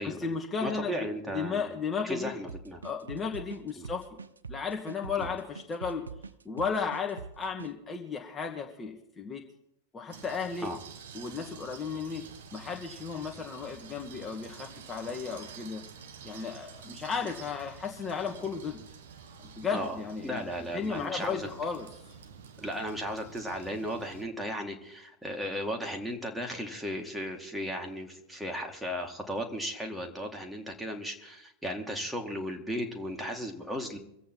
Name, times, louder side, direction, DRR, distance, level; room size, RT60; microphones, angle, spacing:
voice 1, 0.0-2.4 2.8-4.1 4.5-6.0 6.4-9.4 9.9-10.7 11.1-12.2 12.5-15.8 16.2-18.8 19.4-20.4 20.7-21.9, left 5 dB, 20° left, 1 dB, 1.4 m, -34 dB
voice 2, 0.6-1.7 2.0-2.8 3.7-3.9 5.2-5.3 10.6-10.8 19.7-20.0 20.2-21.5 22.6-34.0, equal, 5° right, 2 dB, 2.0 m, -35 dB
sound 1, 2.5-7.7, right 4 dB, 75° right, 0.5 m, -44 dB
sound 2, 10.1-24.2, right 6 dB, 60° right, 1.3 m, -49 dB
24.5 x 8.3 x 4.5 m, 0.79 s
figure-of-eight pair, 90°, 0 cm